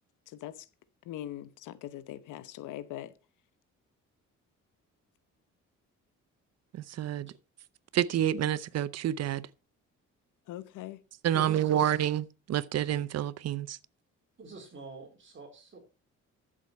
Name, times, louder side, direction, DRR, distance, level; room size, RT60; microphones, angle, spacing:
voice 1, 0.3-0.7 1.0-3.1 10.5-11.0, left 13 dB, 85° left, 0.9 m, -41 dB
voice 2, 6.7-7.3 7.9-9.5 11.2-13.8, right 11 dB, 60° right, 0.7 m, -28 dB
voice 3, 11.3-12.0 14.4-15.8, right 4 dB, 40° right, 4.1 m, -44 dB
12.5 x 7.6 x 4.4 m
cardioid pair, 90°, 30 cm